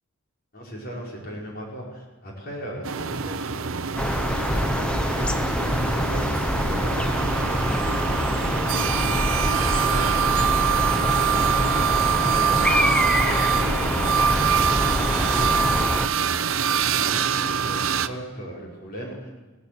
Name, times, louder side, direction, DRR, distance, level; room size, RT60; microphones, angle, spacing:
voice 1, 0.5-7.2 7.5-9.4 9.8-11.7 12.1-14.2 15.0-15.5 16.9-19.3, right 1 dB, 45° left, -3 dB, 5.5 m, -37 dB
sound 1, 2.8-18.1, right 8 dB, 65° right, 0.7 m, -25 dB
sound 2, 4.0-16.1, equal, 5° left, 0.6 m, -25 dB
22.0 x 17.5 x 7.0 m, 1.2 s
head